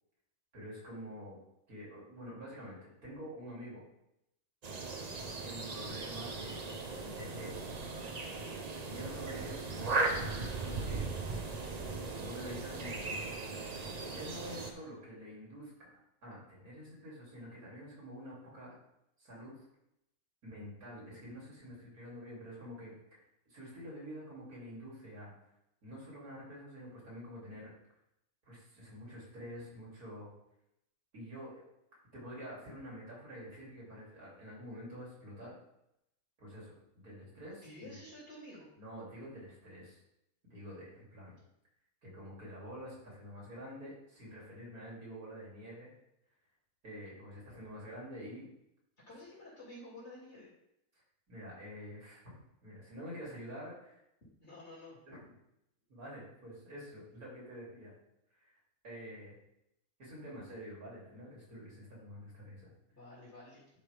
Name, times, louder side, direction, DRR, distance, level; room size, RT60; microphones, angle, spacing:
voice 1, 0.5-1.4 1.7-3.8 5.4-7.7 8.9-11.1 12.1-13.3 14.1-18.7 19.2-19.6 20.4-23.2 23.5-25.3 25.8-27.7 28.5-30.3 31.1-31.6 32.1-35.5 36.4-38.0 38.8-40.0 40.4-41.4 42.0-45.9 46.8-48.5 51.3-54.0 55.1-55.2 55.9-58.0 58.4-58.5 58.8-59.4 60.0-62.7, equal, 80° right, -5 dB, 3.5 m, -48 dB
sound 1, 4.6-14.7, right 3 dB, 35° right, 0.7 m, -38 dB
voice 2, 37.6-38.7 49.1-50.5 54.4-55.0 62.9-63.6, left 1 dB, 50° left, -9 dB, 3.2 m, -51 dB
11.0 x 5.1 x 3.5 m, 0.82 s
omnidirectional pair, 1.5 m